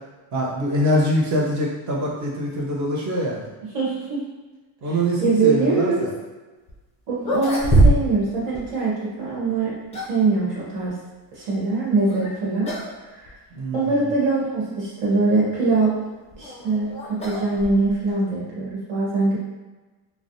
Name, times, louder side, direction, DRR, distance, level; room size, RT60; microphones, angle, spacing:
voice 1, 0.3-3.5 4.8-6.1 13.5-14.1, equal, 35° right, -3 dB, 0.7 m, -24 dB
voice 2, 3.7-4.2 4.8-6.1 7.1-9.8 10.1-10.9 11.3-12.7 13.1-13.3 13.7-16.0 16.4-19.4, right 3 dB, 65° right, -6 dB, 1.3 m, -23 dB
sound 1, 6.7-6.8 7.2-8.3 8.5-8.7 9.5-10.3 12.1-12.3 12.6-13.0 13.3-13.4 14.1-14.2 16.0-18.1, right 2 dB, 15° left, 0.3 m, -22 dB
3.2 x 2.1 x 2.6 m, 1.2 s
cardioid pair, 135°, 48 cm